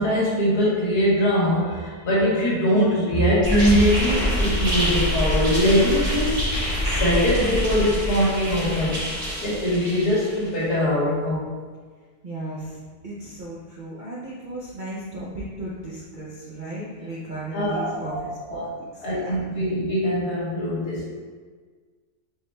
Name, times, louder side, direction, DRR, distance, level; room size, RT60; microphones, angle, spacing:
voice 1, 0.0-6.5 6.9-9.0 9.4-11.5 17.5-18.2 18.5-18.6 19.0-21.1, equal, 80° left, -7 dB, 1.9 m, -22 dB
sound 1, 3.4-10.5, equal, 25° right, 1.6 m, -25 dB
voice 2, 12.2-18.7 18.9-19.4, right 1 dB, 50° right, -8 dB, 0.5 m, -35 dB
4.7 x 4.3 x 2.2 m, 1.5 s
omnidirectional pair, 1.7 m